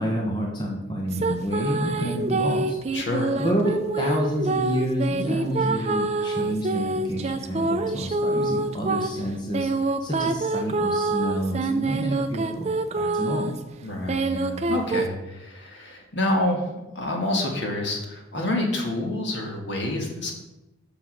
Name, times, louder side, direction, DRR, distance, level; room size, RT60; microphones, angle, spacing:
voice 1, 0.0-2.8 3.4-13.6, equal, 20° left, -1 dB, 1.1 m, -28 dB
sound 1, 1.1-13.6 14.1-15.0, right 2 dB, 30° right, 0.5 m, -26 dB
voice 2, 2.9-3.3 13.8-20.3, left 1 dB, 60° left, 1 dB, 1.6 m, -28 dB
6.3 x 6.1 x 6.3 m, 0.99 s
head